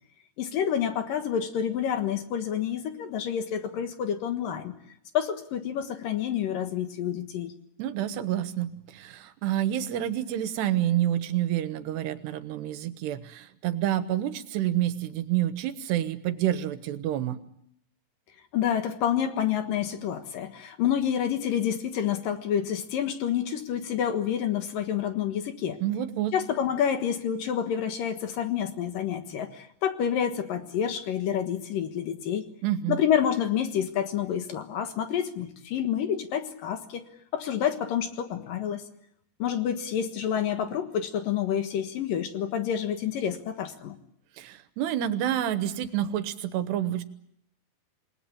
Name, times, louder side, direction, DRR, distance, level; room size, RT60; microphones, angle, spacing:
voice 1, 0.4-4.7 5.1-7.5 18.5-25.8 26.3-32.5 32.9-37.1 37.3-38.8 39.4-44.0, left 9 dB, 65° left, 8 dB, 2.9 m, -28 dB
voice 2, 7.8-17.4 25.8-26.3 32.6-33.0 44.4-47.0, right 12 dB, 85° right, 11 dB, 3.4 m, -28 dB
28.0 x 20.0 x 8.7 m, 0.72 s
omnidirectional pair, 4.7 m